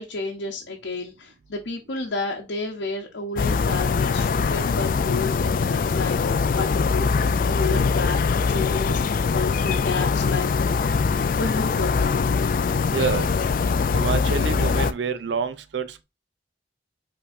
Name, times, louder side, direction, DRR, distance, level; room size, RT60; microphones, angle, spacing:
voice 1, 0.0-6.2 6.6-10.5 10.9-12.2, left 3 dB, 85° left, 0.8 m, -31 dB
sound 1, 3.4-14.9, left 5 dB, 50° left, 0.3 m, -22 dB
voice 2, 12.9-13.3 13.9-16.0, right 5 dB, 85° right, 0.5 m, -27 dB
5.6 x 3.5 x 2.6 m
head